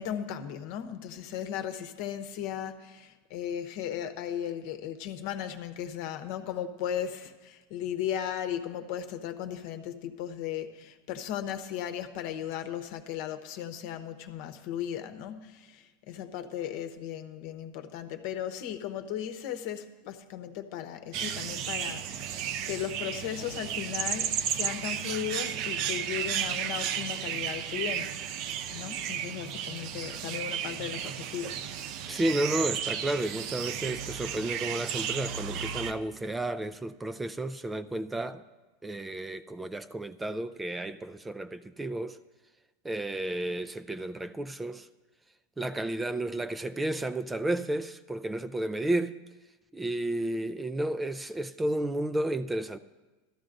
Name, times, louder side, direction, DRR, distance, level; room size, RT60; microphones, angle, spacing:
voice 1, 0.0-28.2 28.7-31.6, left 10 dB, 60° left, 0.9 m, -36 dB
sound 1, 21.1-35.9, right 9 dB, 55° right, 0.6 m, -33 dB
voice 2, 32.1-38.4 38.8-42.2 42.8-44.9 45.6-49.1 49.7-52.8, right 1 dB, 10° right, 0.4 m, -32 dB
17.0 x 13.0 x 2.6 m
hypercardioid pair, 110°, 0 cm